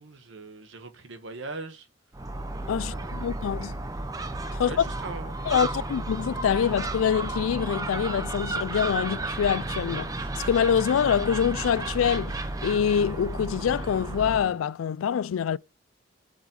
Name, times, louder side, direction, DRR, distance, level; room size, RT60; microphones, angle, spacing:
voice 1, 0.0-1.9 2.7-3.4 4.5-5.9, right 3 dB, 70° right, 1.1 m, -41 dB
Gull seagull, 2.1-14.6, right 2 dB, 15° right, 0.5 m, -33 dB
voice 2, 2.7-3.8 4.5-4.9 5.5-12.4 12.6-15.6, left 8 dB, 90° left, 0.3 m, -25 dB
5.3 x 5.0 x 6.1 m
head